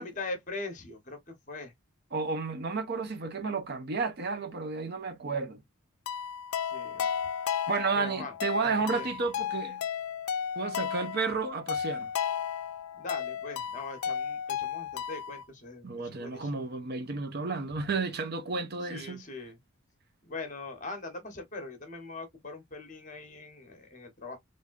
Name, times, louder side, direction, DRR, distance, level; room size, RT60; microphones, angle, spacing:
voice 1, 0.0-1.7 6.6-7.1 7.9-8.3 8.6-9.1 13.0-16.7 18.9-19.6 20.2-24.4, left 3 dB, 35° left, 1.0 m, -41 dB
voice 2, 2.1-5.6 7.7-9.8 10.6-12.1 15.8-19.2, right 4 dB, 50° right, 0.5 m, -32 dB
sound 1, 6.1-15.4, left 8 dB, 90° left, 0.4 m, -34 dB
3.5 x 2.6 x 2.4 m
head